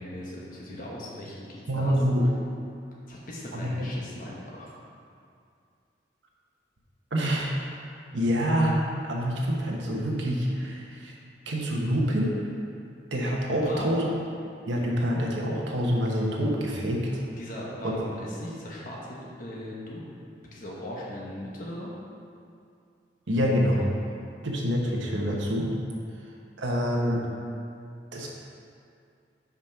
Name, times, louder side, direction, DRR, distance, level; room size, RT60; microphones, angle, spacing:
voice 1, 0.0-1.9 3.1-4.7 13.5-13.9 17.4-20.0 20.4-21.9, left 1 dB, 50° left, -4 dB, 1.1 m, -39 dB
voice 2, 1.7-2.3 3.5-3.9 7.1-7.5 8.1-8.8 9.0-11.2 11.5-12.3 13.1-14.0 14.7-17.2 17.8-17.9 23.3-23.9 24.4-25.7 26.6-27.3 28.1-28.3, equal, 90° right, -2 dB, 1.1 m, -26 dB
6.0 x 5.2 x 5.7 m, 2.4 s
head